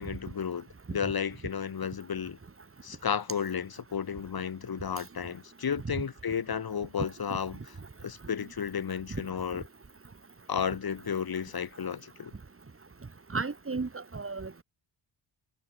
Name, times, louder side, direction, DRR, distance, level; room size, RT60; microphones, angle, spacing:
voice 1, 0.0-2.4 2.8-7.6 8.0-9.6 10.5-12.3, left 7 dB, 55° left, 2.7 m, -33 dB
voice 2, 13.3-14.6, right 4 dB, 30° right, 3.5 m, -34 dB
cardioid pair, 85°, 45 cm